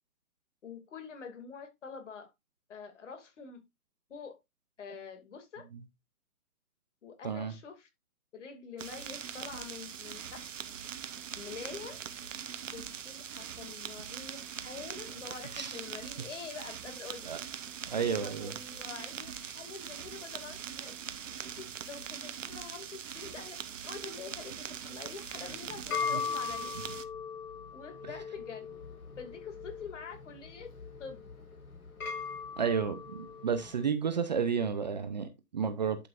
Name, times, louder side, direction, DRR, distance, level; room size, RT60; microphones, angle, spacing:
voice 1, 0.6-2.3 2.7-3.6 4.1-4.4 4.8-5.6 7.0-7.9 8.3-10.5 11.4-12.0 12.7-17.3 18.0-27.1 27.7-28.7 29.2-30.7 31.0-31.3, left 6 dB, 50° left, 2.5 m, -46 dB
sound 1, 8.8-27.0, right 8 dB, 55° right, 1.0 m, -42 dB
voice 2, 17.9-18.5 26.1-26.3 32.6-36.1, right 6 dB, 30° right, 0.6 m, -32 dB
sound 2, 25.3-33.8, left 6 dB, 65° left, 5.1 m, -39 dB
11.0 x 5.8 x 2.5 m
figure-of-eight pair, 145°, 45 cm